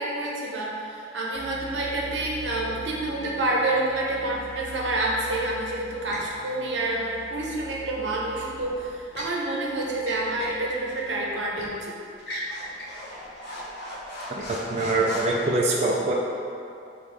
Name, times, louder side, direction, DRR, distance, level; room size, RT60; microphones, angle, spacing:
voice 1, 0.0-11.9, right 2 dB, 90° right, -3 dB, 0.7 m, -28 dB
sound 1, 1.3-11.8, left 2 dB, 35° left, 1.2 m, -45 dB
sound 2, 6.1-6.3 8.5-9.4 10.0-10.6 11.0-11.1 11.6-11.8 12.2-15.5, equal, 65° left, 0.8 m, -37 dB
voice 2, 14.3-16.1, right 2 dB, 35° right, -2 dB, 0.3 m, -24 dB
5.3 x 2.5 x 3.2 m, 2.5 s
head